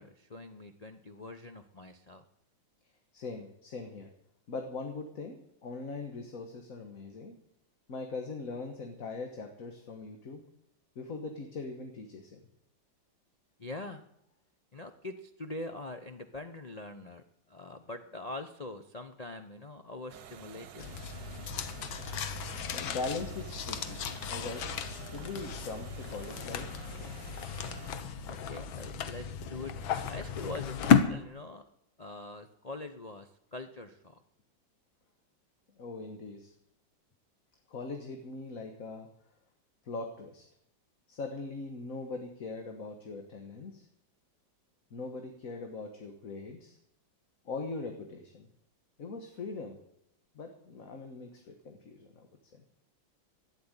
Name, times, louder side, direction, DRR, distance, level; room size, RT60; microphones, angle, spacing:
voice 1, 0.0-2.2 13.6-14.0 14.7-17.2 17.5-20.9 28.3-29.7 30.1-31.6 32.0-34.2, left 2 dB, 70° left, 7 dB, 0.3 m, -43 dB
voice 2, 3.1-4.1 4.5-7.4 7.9-10.4 10.9-12.4 22.4-24.0 24.3-24.7 25.0-26.7 35.8-36.5 37.7-39.1 39.8-40.4 41.1-43.9 44.9-46.8 47.4-48.5 49.0-49.8 50.3-52.6, left 3 dB, 45° left, 5 dB, 1.6 m, -41 dB
sound 1, 20.1-27.9, right 9 dB, 65° right, 1.5 m, -50 dB
sound 2, 20.8-31.0, left 7 dB, 85° left, 1.8 m, -33 dB
12.5 x 9.4 x 9.8 m, 0.78 s
omnidirectional pair, 2.1 m